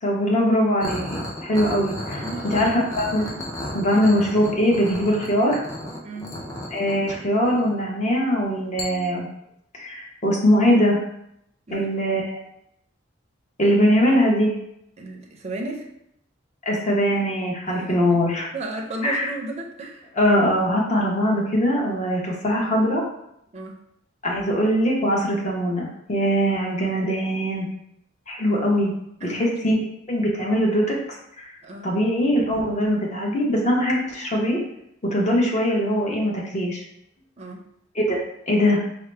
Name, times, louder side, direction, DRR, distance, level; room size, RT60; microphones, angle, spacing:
voice 1, 0.0-3.5 3.7-5.6 6.7-9.3 9.7-11.0 11.7-12.3 13.6-14.5 16.7-18.5 19.0-19.3 20.2-23.0 24.2-27.7 28.3-28.9 29.2-29.8 30.1-31.0 31.4-31.5 31.8-34.6 35.0-36.8 37.9-38.2 38.5-38.8, equal, 35° left, -3 dB, 0.8 m, -21 dB
sound 1, 0.8-7.8 8.8-8.9, left 1 dB, 15° left, 0.5 m, -34 dB
voice 2, 2.2-2.7 3.9-4.1 6.0-6.4 11.7-11.9 15.0-15.9 17.7-18.2 18.5-20.1 23.5-23.8 29.2-29.6 31.6-31.9 37.4-37.6, right 2 dB, 35° right, 0 dB, 0.5 m, -34 dB
4.7 x 2.0 x 3.2 m, 0.78 s
head